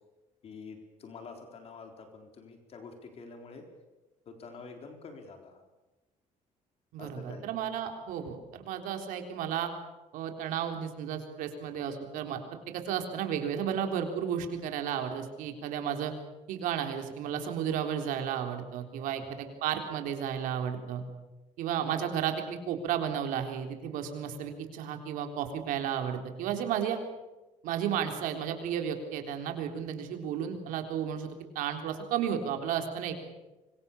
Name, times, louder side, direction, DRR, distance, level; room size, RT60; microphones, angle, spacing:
voice 1, 0.4-3.7 4.3-5.6 7.0-7.5 19.4-19.5, left 4 dB, 50° left, 5 dB, 4.0 m, -47 dB
voice 2, 6.9-9.7 10.1-16.1 16.5-21.0 21.6-27.0 27.6-31.3 31.6-33.2, right 8 dB, 85° right, 5 dB, 3.8 m, -33 dB
25.5 x 23.0 x 7.1 m, 1.1 s
cardioid pair, 130°, 14 cm